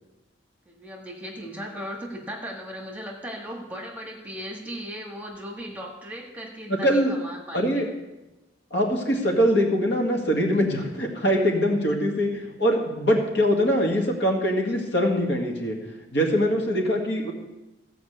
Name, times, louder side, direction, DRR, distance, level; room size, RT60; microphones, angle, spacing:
voice 1, 0.7-7.9, equal, 10° right, -1 dB, 1.7 m, -37 dB
voice 2, 6.8-7.1 7.5-7.9 8.7-15.8 16.1-17.3, equal, 65° left, 0 dB, 1.9 m, -23 dB
14.5 x 5.1 x 8.0 m, 1.0 s
head